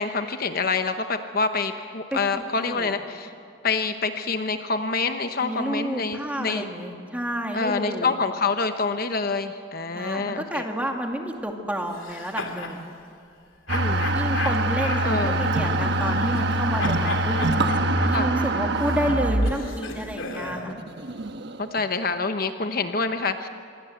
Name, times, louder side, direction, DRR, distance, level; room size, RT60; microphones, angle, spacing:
voice 1, 0.0-3.3 3.6-6.6 7.5-10.6 13.7-14.1 15.0-15.4 18.1-18.3 20.7-20.8 21.6-23.5, left 4 dB, 45° left, 8 dB, 1.0 m, -26 dB
voice 2, 2.1-2.9 5.4-8.1 9.9-12.8 14.1-17.7 18.0-20.8, equal, 5° right, 2 dB, 2.3 m, -30 dB
sound 1, 11.9-12.8 13.7-16.5 16.8-20.7, left 4 dB, 75° left, 2.9 m, -35 dB
sound 2, 13.7-21.8, right 1 dB, 55° right, 1.2 m, -25 dB
26.5 x 23.0 x 8.0 m, 2.6 s
head